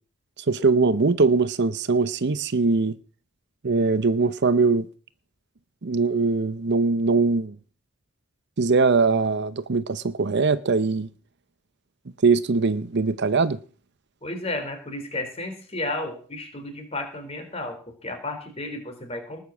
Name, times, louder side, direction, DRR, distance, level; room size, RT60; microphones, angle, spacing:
voice 1, 0.5-2.9 3.6-4.9 5.8-7.5 8.6-11.1 12.2-13.6, right 4 dB, 55° right, 0.7 m, -21 dB
voice 2, 14.2-19.4, left 2 dB, 30° left, 3.7 m, -33 dB
19.5 x 6.8 x 7.2 m
head